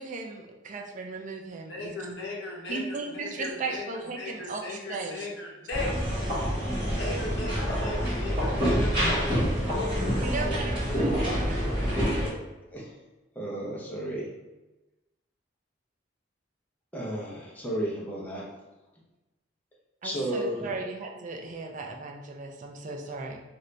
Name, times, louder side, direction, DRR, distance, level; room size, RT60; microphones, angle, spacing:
voice 1, 0.0-2.2 2.7-5.3 10.2-12.0 20.0-23.4, right 3 dB, 45° right, 2 dB, 0.4 m, -36 dB
voice 2, 1.7-3.8 4.2-5.9 6.9-9.3, left 2 dB, 75° left, -3 dB, 0.9 m, -37 dB
sound 1, 5.7-12.3, equal, 30° right, 1.4 m, -27 dB
voice 3, 12.7-13.0 13.3-14.3 16.9-18.6 20.0-20.7, right 1 dB, 10° left, -5 dB, 0.7 m, -33 dB
2.8 x 2.5 x 3.3 m, 1.1 s
head